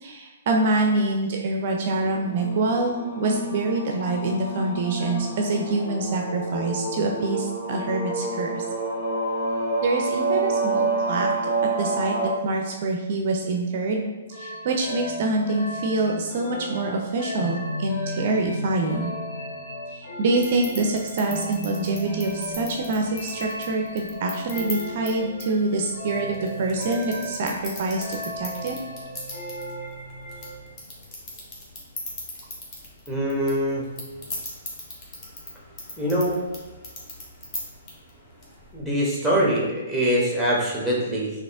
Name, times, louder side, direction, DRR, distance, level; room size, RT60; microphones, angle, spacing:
voice 1, 0.0-8.6 9.8-11.3 11.8-12.1 12.4-19.1 19.9-28.8, right 2 dB, 45° right, 2 dB, 0.4 m, -25 dB
sound 1, 2.0-12.3, right 2 dB, 80° left, 1.3 m, -28 dB
sound 2, 14.3-30.7, left 1 dB, 50° left, 0.7 m, -36 dB
sound 3, 20.4-38.8, left 2 dB, 25° left, 1.1 m, -40 dB
voice 2, 33.1-33.8 36.0-36.4 38.7-41.3, equal, ahead, -4 dB, 1.0 m, -23 dB
4.1 x 2.7 x 3.4 m, 1.2 s
figure-of-eight pair, 125°, 0 cm